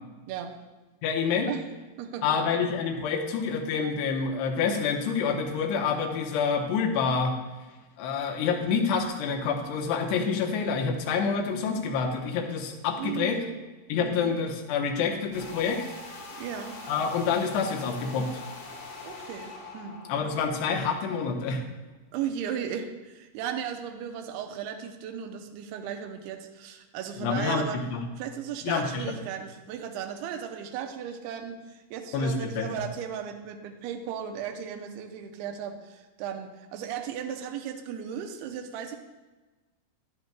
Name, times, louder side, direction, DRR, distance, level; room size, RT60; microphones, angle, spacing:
voice 1, 1.0-1.5 2.2-7.4 8.0-13.4 13.9-15.8 16.9-18.4 20.1-21.6 27.2-28.0 28.6-29.2 32.1-32.7, left 5 dB, 80° left, 2 dB, 2.8 m, -27 dB
voice 2, 2.0-2.5 13.0-13.5 13.9-14.3 16.4-16.8 19.0-20.0 22.1-27.8 28.2-39.0, right 8 dB, 80° right, 5 dB, 2.4 m, -36 dB
sound 1, 15.3-20.3, left 3 dB, 60° left, 1.9 m, -43 dB
10.5 x 10.5 x 2.2 m, 1.2 s
omnidirectional pair, 5.1 m